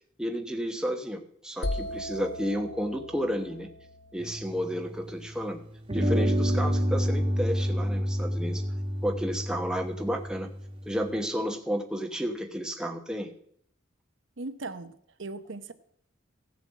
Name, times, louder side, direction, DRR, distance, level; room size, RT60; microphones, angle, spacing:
voice 1, 0.2-3.7 4.1-5.6 5.9-8.6 9.0-10.5 10.8-13.3, equal, 5° right, 4 dB, 1.1 m, -31 dB
sound 1, 1.6-5.4, left 1 dB, 60° left, 0.9 m, -38 dB
sound 2, 4.2-5.4 5.9-11.1, equal, 25° right, 1.4 m, -29 dB
voice 2, 14.4-15.7, right 3 dB, 70° right, 10 dB, 0.9 m, -38 dB
16.0 x 7.2 x 7.5 m, 0.65 s
head